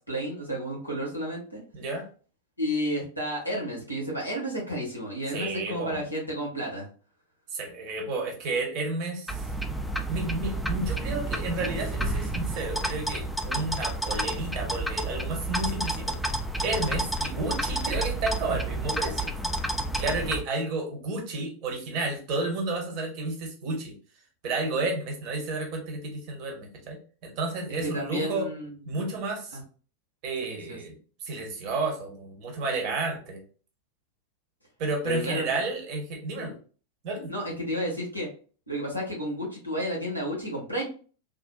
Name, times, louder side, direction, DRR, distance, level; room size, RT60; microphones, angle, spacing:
voice 1, 0.1-1.6 2.6-6.9 27.8-29.0 29.5-29.6 30.4-30.8 35.0-35.4 36.4-36.5 37.3-38.3 38.7-40.8, equal, 90° right, -4 dB, 1.2 m, -32 dB
voice 2, 1.7-2.1 5.3-6.0 7.5-9.5 10.1-16.2 16.6-19.3 20.0-23.9 24.4-27.0 27.2-28.5 28.9-29.6 30.2-33.4 34.8-36.5 37.0-37.3, right 3 dB, 40° right, 1 dB, 1.0 m, -31 dB
sound 1, 9.3-20.4, right 1 dB, ahead, 0.3 m, -30 dB
3.6 x 2.4 x 2.2 m, 0.39 s
figure-of-eight pair, 90°, 0 cm